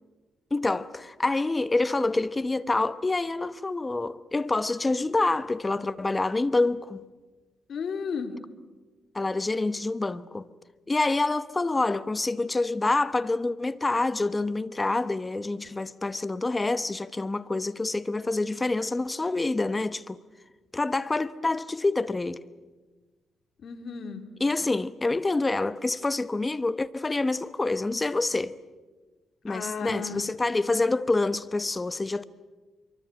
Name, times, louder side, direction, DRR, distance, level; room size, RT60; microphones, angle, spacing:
voice 1, 0.5-7.0 9.1-10.5 10.9-20.2 20.7-22.4 24.4-28.6 29.4-32.2, left 2 dB, 20° left, 1.0 m, -27 dB
voice 2, 7.7-8.3 23.6-24.2 29.5-30.2, left 6 dB, 55° left, 2.8 m, -34 dB
26.0 x 24.0 x 8.9 m
cardioid pair, 120°, 0 cm